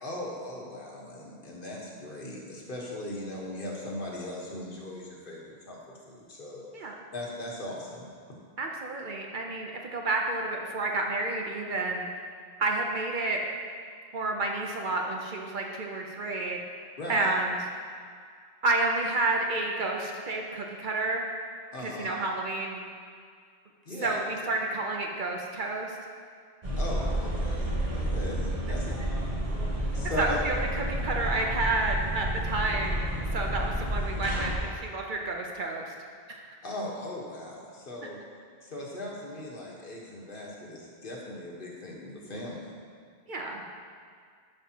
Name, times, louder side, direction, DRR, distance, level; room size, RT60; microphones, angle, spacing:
voice 1, 0.0-6.6 7.1-8.1 17.0-17.3 21.7-22.1 23.8-24.2 26.8-28.9 29.9-30.4 36.6-38.2 38.6-42.6, left 1 dB, 60° left, -3 dB, 1.4 m, -38 dB
voice 2, 8.6-12.2 12.6-13.4 14.1-16.6 17.1-17.7 18.6-21.3 21.8-22.8 24.0-26.0 30.0-33.1 33.3-35.9 36.3-36.6 43.3-43.6, right 2 dB, 55° right, 1 dB, 0.8 m, -30 dB
sound 1, 26.6-34.6, right 1 dB, 35° right, 1.1 m, -30 dB
11.5 x 5.5 x 2.9 m, 2.1 s
omnidirectional pair, 1.1 m